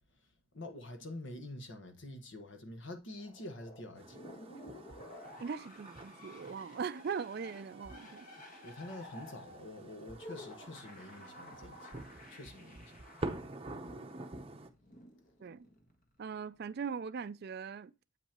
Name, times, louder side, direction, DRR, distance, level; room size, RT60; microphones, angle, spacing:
voice 1, 0.5-4.2 8.6-11.9 12.3-13.0, left 1 dB, 60° left, 1.3 m, -47 dB
sound 1, 3.2-15.9, left 1 dB, 40° left, 1.4 m, -53 dB
sound 2, 3.9-14.7, right 2 dB, 25° right, 0.7 m, -47 dB
voice 2, 5.4-8.3 15.4-15.7 16.2-17.9, right 6 dB, 50° right, 0.4 m, -40 dB
8.1 x 5.5 x 2.9 m
head